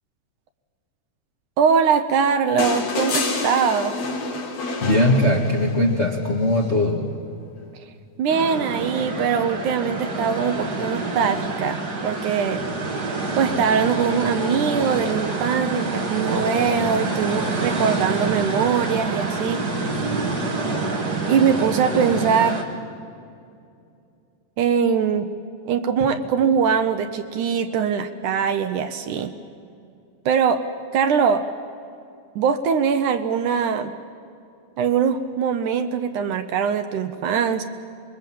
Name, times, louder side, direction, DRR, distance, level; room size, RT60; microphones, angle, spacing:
voice 1, 1.6-4.0 8.2-12.6 13.4-19.6 21.3-22.6 24.6-25.3 25.7-29.3 30.3-30.6 30.9-31.5 32.4-33.9 34.8-37.6, right 6 dB, 70° right, 8 dB, 2.2 m, -22 dB
sound 1, 2.6-5.9 7.4-7.5, left 3 dB, 55° left, 3.5 m, -27 dB
voice 2, 4.8-7.1, left 1 dB, 30° left, 0 dB, 1.3 m, -20 dB
sound 2, 8.3-22.6, right 3 dB, 30° right, 2.3 m, -27 dB
26.0 x 22.0 x 7.6 m, 2.5 s
omnidirectional pair, 4.0 m